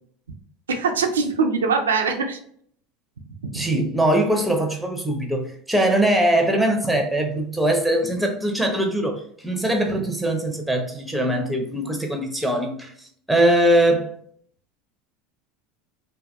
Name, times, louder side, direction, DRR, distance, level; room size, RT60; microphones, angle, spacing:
voice 1, 0.7-2.4 3.5-3.7, right 4 dB, 90° right, 4 dB, 0.3 m, -22 dB
voice 2, 3.5-12.9 13.3-14.1, right 1 dB, ahead, 3 dB, 0.6 m, -21 dB
2.7 x 2.2 x 2.2 m, 0.63 s
hypercardioid pair, 85°, 0 cm